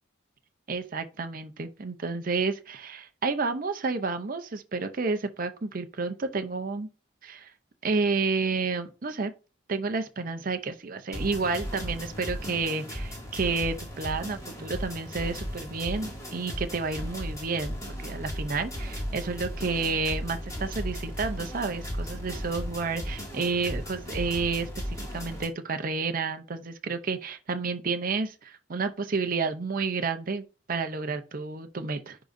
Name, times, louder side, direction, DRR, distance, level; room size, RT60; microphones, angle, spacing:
voice 1, 0.7-6.9 7.2-7.5 7.8-9.3 9.7-32.2, right 4 dB, 45° right, 0.6 m, -30 dB
sound 1, 11.1-25.4, equal, 15° left, 2.2 m, -36 dB
10.0 x 3.8 x 2.6 m
head